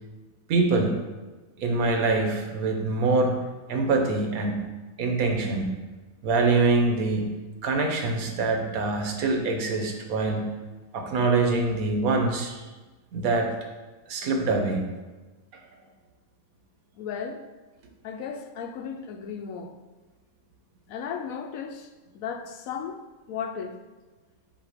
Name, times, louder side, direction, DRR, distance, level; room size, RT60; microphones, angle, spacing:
voice 1, 0.5-1.0 1.6-3.4 3.7-4.6 5.0-5.7 6.2-7.3 7.6-10.5 10.9-12.6 13.1-13.5 14.1-14.8, right 3 dB, 85° right, 3 dB, 1.3 m, -24 dB
voice 2, 17.0-17.4 18.0-19.7 20.9-23.0 23.3-23.8, left 7 dB, 80° left, 6 dB, 1.0 m, -35 dB
7.5 x 2.8 x 5.0 m, 1.2 s
omnidirectional pair, 1.5 m